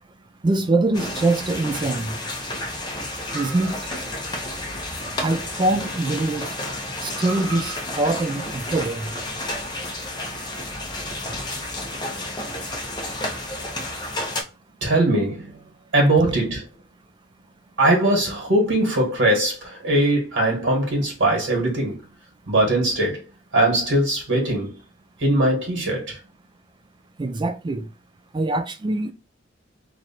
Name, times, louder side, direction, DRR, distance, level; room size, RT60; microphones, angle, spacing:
voice 1, 0.4-2.1 3.3-3.7 5.2-6.5 7.0-9.1 27.2-27.8 28.3-29.1, right 2 dB, 25° right, 0.3 m, -23 dB
sound 1, 0.9-14.4, left 1 dB, 25° left, 0.8 m, -31 dB
voice 2, 14.8-15.5 15.9-16.6 17.8-22.0 22.5-23.2 23.5-24.7 25.2-26.2, right 1 dB, 75° right, 1.8 m, -20 dB
3.1 x 2.6 x 4.3 m
head